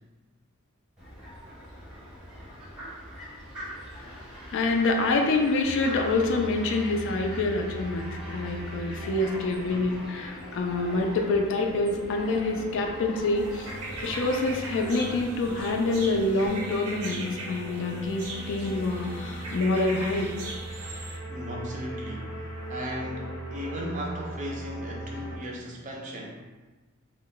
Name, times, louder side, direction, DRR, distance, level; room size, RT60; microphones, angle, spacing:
Fowl, 1.0-16.5, equal, 5° right, 0.8 m, -43 dB
voice 1, 4.5-13.7 14.0-20.3, left 2 dB, 60° left, 3 dB, 0.3 m, -26 dB
sound 1, 5.6-25.4, right 1 dB, 90° left, 0.9 m, -40 dB
sound 2, 13.4-21.2, right 2 dB, 85° right, 0.6 m, -40 dB
voice 2, 21.3-26.4, equal, 35° right, -1 dB, 0.4 m, -37 dB
2.2 x 2.1 x 3.7 m, 1.3 s
head